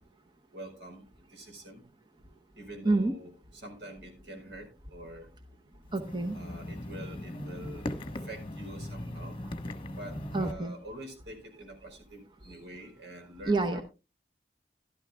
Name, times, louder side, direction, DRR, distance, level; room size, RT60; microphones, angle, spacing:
voice 1, 0.5-1.0 1.3-1.9 2.5-5.3 5.7-5.8 6.3-9.4 10.0-13.8, right 1 dB, 85° right, 4 dB, 4.4 m, -46 dB
sound 1, 5.9-10.5, left 1 dB, 30° left, 1.2 m, -39 dB
voice 2, 5.9-6.4 10.3-10.7 13.5-13.8, right 2 dB, 25° right, 5 dB, 0.8 m, -27 dB
15.5 x 12.0 x 2.3 m, 0.29 s
head